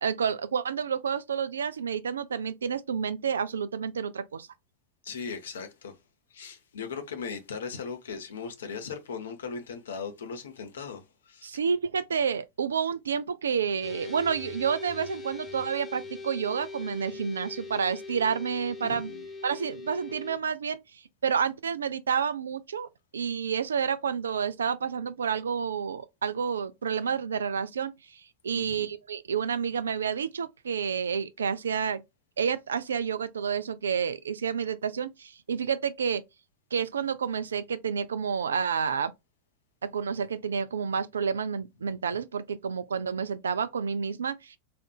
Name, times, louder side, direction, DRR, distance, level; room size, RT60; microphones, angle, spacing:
voice 1, 0.0-4.5 11.4-19.1 19.4-20.8 21.2-27.9 28.4-32.0 32.4-36.2 36.7-39.1 39.8-44.6, right 6 dB, 70° right, 0.3 m, -29 dB
voice 2, 5.0-6.0 6.3-11.5 18.8-19.3 28.5-28.9, left 5 dB, 65° left, 0.8 m, -38 dB
sound 1, 13.8-20.4, left 3 dB, 10° left, 1.0 m, -41 dB
4.3 x 2.4 x 2.2 m
figure-of-eight pair, 90°, 0 cm